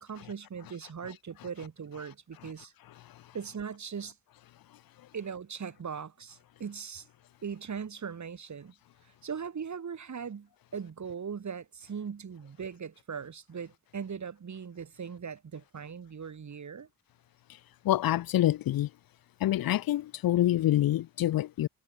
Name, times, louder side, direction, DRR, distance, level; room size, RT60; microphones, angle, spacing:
voice 1, 0.0-2.7 3.3-4.2 5.1-7.1 7.4-8.7 9.0-16.9, right 6 dB, 50° right, 2.1 m, -39 dB
voice 2, 3.0-3.3 5.0-5.1 17.5-17.6 17.8-18.9 19.4-21.7, left 13 dB, 75° left, 0.5 m, -27 dB
cardioid pair, 90°, 36 cm